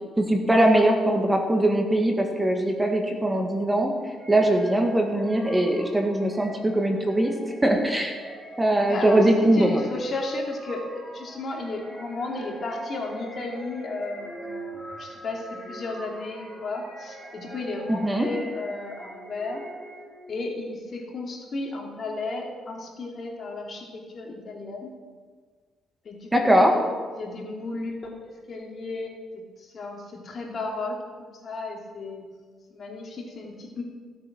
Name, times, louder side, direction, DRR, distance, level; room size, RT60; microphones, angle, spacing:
voice 1, 0.2-3.9 4.3-7.3 7.6-8.2 8.6-9.8 17.9-18.3 26.3-26.7, right 1 dB, 15° right, 2 dB, 2.0 m, -21 dB
sound 1, 4.2-20.4, right 1 dB, 10° left, 3.8 m, -43 dB
voice 2, 8.9-9.2 9.5-19.6 20.3-24.9 26.0-26.9 27.2-28.0 28.2-32.2 32.7-33.8, left 2 dB, 45° left, 0 dB, 3.0 m, -34 dB
16.5 x 8.4 x 6.2 m, 1.6 s
cardioid pair, 90°, 0 cm